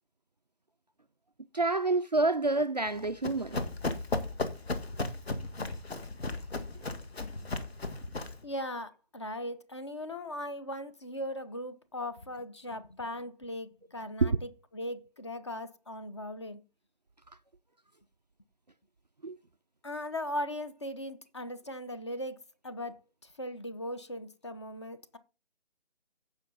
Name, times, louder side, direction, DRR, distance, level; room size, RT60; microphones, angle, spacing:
voice 1, 1.5-3.6 14.2-14.4 19.2-19.3, right 3 dB, 40° right, 0.4 m, -27 dB
Run, 2.9-8.4, left 2 dB, 65° left, 1.8 m, -35 dB
voice 2, 8.4-16.6 19.8-23.0 23.2-25.2, left 1 dB, 25° left, 0.7 m, -39 dB
15.5 x 5.5 x 3.9 m
figure-of-eight pair, 155°, 33 cm